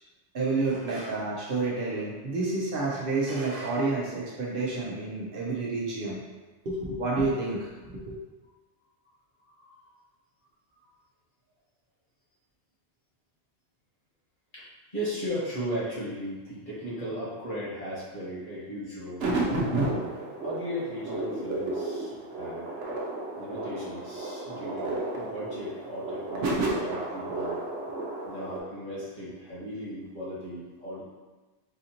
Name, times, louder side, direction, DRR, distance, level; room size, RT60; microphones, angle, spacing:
voice 1, 0.3-6.2 6.6-8.2, right 3 dB, 60° right, -4 dB, 0.8 m, -29 dB
voice 2, 9.4-10.0 14.5-19.7 20.4-22.7 23.4-27.6 28.3-31.0, equal, 50° left, -8 dB, 1.4 m, -37 dB
sound 1, 19.2-28.6, right 2 dB, 90° right, 1.0 m, -32 dB
4.1 x 2.6 x 2.8 m, 1.2 s
omnidirectional pair, 1.2 m